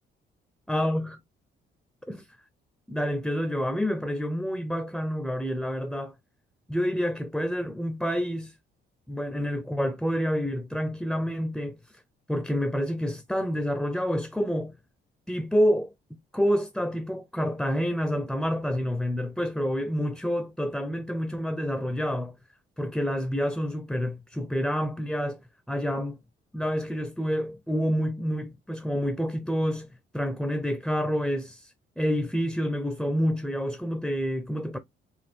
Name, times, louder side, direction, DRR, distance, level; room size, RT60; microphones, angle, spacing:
voice 1, 0.7-1.2 2.1-2.3 2.9-6.1 6.7-8.5 9.1-12.0 12.3-14.7 15.3-15.9 16.3-22.4 22.8-25.4 25.7-26.2 26.5-29.9 30.1-34.8, equal, ahead, 0.6 m, -28 dB
4.4 x 2.3 x 4.3 m
cardioid pair, 90°, 20 cm